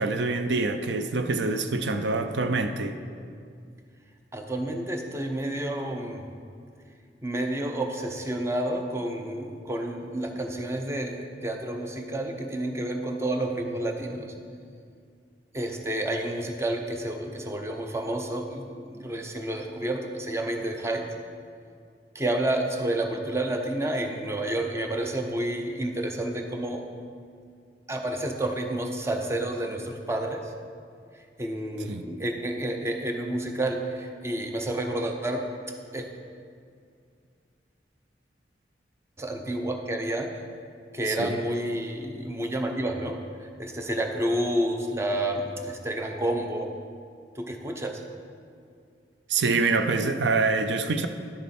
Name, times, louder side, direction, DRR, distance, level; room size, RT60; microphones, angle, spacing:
voice 1, 0.0-3.0 31.9-32.1 41.1-41.4 49.3-51.1, right 3 dB, 85° right, 8 dB, 0.5 m, -25 dB
voice 2, 4.3-6.2 7.2-14.3 15.5-21.1 22.1-26.8 27.9-30.5 31.4-35.4 35.9-36.1 39.2-40.3 40.9-46.7 47.4-48.0, right 1 dB, 15° right, 3 dB, 0.7 m, -30 dB
11.0 x 6.7 x 4.3 m, 2.2 s
head